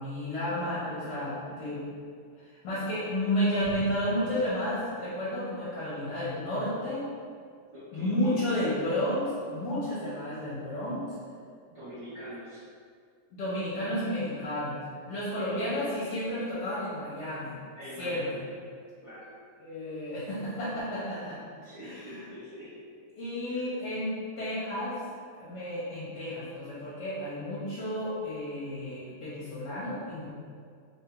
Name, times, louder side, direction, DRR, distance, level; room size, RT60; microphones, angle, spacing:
voice 1, 0.0-1.8 2.6-7.0 7.9-11.0 13.3-17.6 18.0-18.4 19.6-21.4 21.8-22.2 23.2-25.0 25.3-30.3, left 1 dB, 70° left, -10 dB, 1.4 m, -32 dB
sound 1, 3.6-6.1, equal, 85° right, 1.6 m, -47 dB
voice 2, 7.7-8.4 11.7-12.6 15.2-15.9 17.7-18.3 19.0-19.3 21.5-22.7 23.5-23.6, equal, 25° right, -16 dB, 0.8 m, -44 dB
3.5 x 2.3 x 2.9 m, 2.2 s
omnidirectional pair, 1.9 m